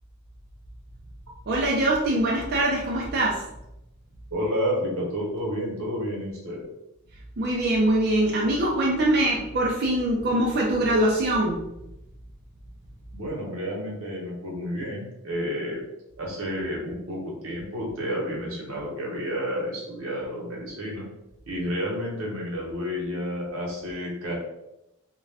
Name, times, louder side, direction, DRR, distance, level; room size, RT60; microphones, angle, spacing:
voice 1, 1.5-3.4 7.4-11.7, right 1 dB, 50° right, -3 dB, 0.4 m, -23 dB
voice 2, 4.3-6.6 13.1-15.8 16.2-21.1 21.5-24.4, equal, 85° right, -3 dB, 0.9 m, -30 dB
2.4 x 2.2 x 3.3 m, 0.89 s
head